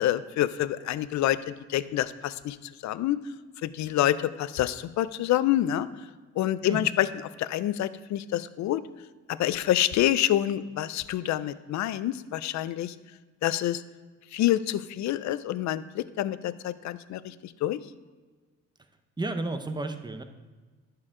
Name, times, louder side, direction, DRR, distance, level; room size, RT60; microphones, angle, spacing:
voice 1, 0.0-2.6 2.8-3.2 3.6-5.9 6.4-7.1 7.4-8.8 9.3-12.9 13.4-13.8 14.3-17.8, left 13 dB, 70° left, 15 dB, 0.5 m, -27 dB
voice 2, 19.2-20.2, right 2 dB, 15° right, 7 dB, 0.7 m, -32 dB
11.0 x 4.6 x 3.7 m, 1.4 s
cardioid pair, 90°, 30 cm